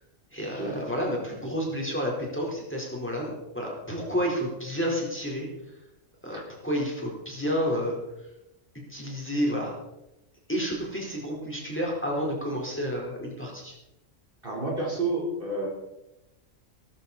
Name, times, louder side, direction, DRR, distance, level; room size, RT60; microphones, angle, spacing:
voice 1, 0.3-5.5 6.2-8.0 8.9-9.7 10.5-13.7, equal, 10° left, -2 dB, 4.2 m, -30 dB
voice 2, 14.4-15.7, right 2 dB, 45° right, -2 dB, 4.3 m, -30 dB
18.0 x 13.5 x 4.2 m, 0.91 s
omnidirectional pair, 1.3 m